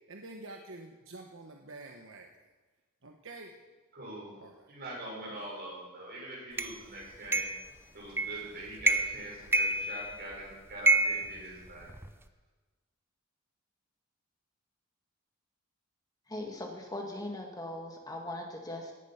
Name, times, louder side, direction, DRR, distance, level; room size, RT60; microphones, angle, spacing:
voice 1, 0.1-2.3 3.0-3.5 4.4-4.6 5.3-5.4, right 2 dB, 65° right, 2 dB, 1.2 m, -47 dB
voice 2, 3.9-4.3 4.7-7.5 7.9-11.9, right 1 dB, 50° right, -3 dB, 6.5 m, -43 dB
sound 1, 6.6-6.7 7.3-7.7 8.2-8.5 8.8-9.2 9.5-10.3 10.9-12.1, right 2 dB, 10° right, 0.6 m, -28 dB
voice 3, 16.3-18.9, left 1 dB, 20° left, 2 dB, 1.7 m, -39 dB
17.5 x 9.9 x 5.9 m, 1.2 s
head